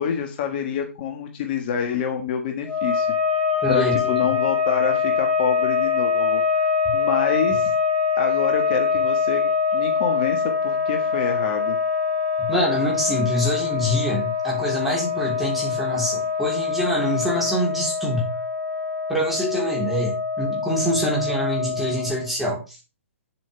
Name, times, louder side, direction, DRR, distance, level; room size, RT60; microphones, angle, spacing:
voice 1, 0.0-3.1 3.7-7.7 8.2-11.8, left 7 dB, 45° left, 4 dB, 1.6 m, -27 dB
sound 1, 2.6-22.3, left 5 dB, 15° left, 5.3 m, -24 dB
voice 2, 3.6-4.2 12.4-18.4 19.1-22.8, equal, ahead, -4 dB, 3.5 m, -25 dB
8.6 x 7.6 x 3.4 m, 0.29 s
hypercardioid pair, 135°, 7 cm